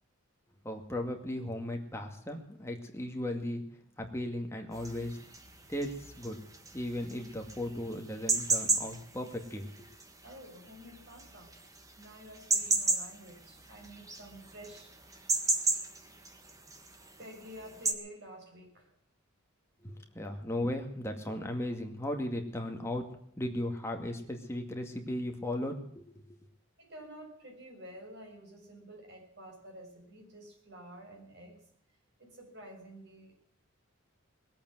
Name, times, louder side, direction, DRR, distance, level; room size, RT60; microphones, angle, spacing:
voice 1, 0.6-3.6 4.0-5.2 5.7-6.4 6.7-9.9 19.8-23.1 23.4-26.4, left 1 dB, 10° left, 3 dB, 2.1 m, -36 dB
sound 1, 4.7-17.9, right 3 dB, 15° right, 1.5 m, -34 dB
voice 2, 10.2-11.5 12.0-15.0 17.2-18.9 26.8-31.6 32.2-33.3, right 1 dB, 50° right, 0 dB, 6.6 m, -50 dB
20.5 x 8.8 x 7.8 m, 0.69 s
head